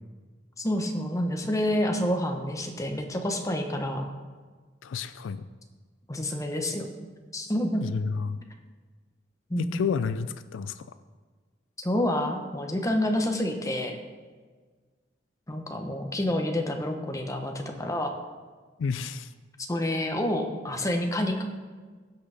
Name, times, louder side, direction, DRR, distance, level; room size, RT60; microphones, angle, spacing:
voice 1, 0.6-4.1 6.1-6.9 7.3-7.8 9.5-9.8 11.8-14.0 15.5-18.1 19.7-21.4, left 1 dB, 15° left, 4 dB, 0.9 m, -28 dB
voice 2, 4.8-5.4 7.8-8.4 9.6-10.9 18.8-19.3, left 5 dB, 80° left, 12 dB, 0.4 m, -30 dB
16.0 x 6.2 x 3.4 m, 1.5 s
head